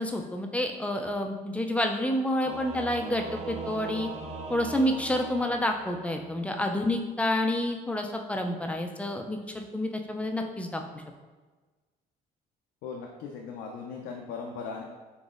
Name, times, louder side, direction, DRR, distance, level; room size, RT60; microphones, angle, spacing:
voice 1, 0.0-4.1 4.5-11.0, left 1 dB, 10° left, 4 dB, 0.3 m, -29 dB
Singing / Musical instrument, 2.4-6.5, right 3 dB, 40° right, 0.6 m, -40 dB
voice 2, 12.8-14.8, left 5 dB, 80° left, 0 dB, 0.4 m, -38 dB
3.9 x 2.9 x 2.4 m, 1.3 s
cardioid pair, 110°, 17 cm